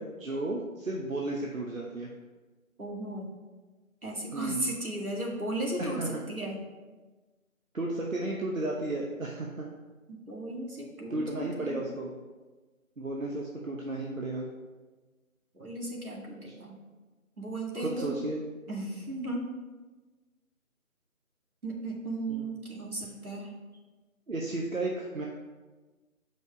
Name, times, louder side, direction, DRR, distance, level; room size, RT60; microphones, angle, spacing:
voice 1, 0.0-2.1 4.3-4.7 5.8-6.2 7.7-9.7 11.1-12.1 13.0-14.5 16.5-16.6 17.7-18.4 22.3-22.5 24.3-25.3, right 2 dB, 65° right, -1 dB, 1.0 m, -33 dB
voice 2, 2.8-3.3 4.0-6.0 6.3-6.6 10.1-11.8 15.5-16.8 17.4-18.1 18.7-19.5 21.6-23.5, right 2 dB, 85° right, -2 dB, 2.1 m, -35 dB
7.0 x 5.3 x 4.6 m, 1.3 s
figure-of-eight pair, 165°, 42 cm